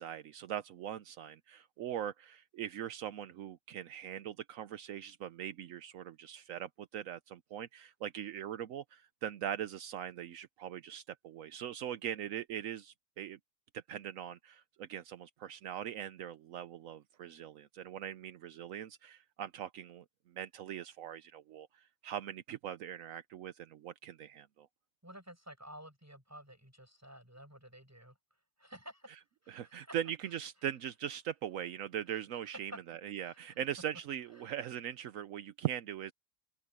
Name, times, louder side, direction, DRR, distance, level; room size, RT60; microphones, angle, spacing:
voice 1, 0.0-13.4 13.7-24.7 29.5-36.1, right 10 dB, 80° right, 1.1 m, -41 dB
voice 2, 25.0-28.1 28.6-29.1 29.4-29.9 33.3-33.4 34.4-34.5, right 1 dB, 10° right, 7.5 m, -52 dB
open air
omnidirectional pair, 1.4 m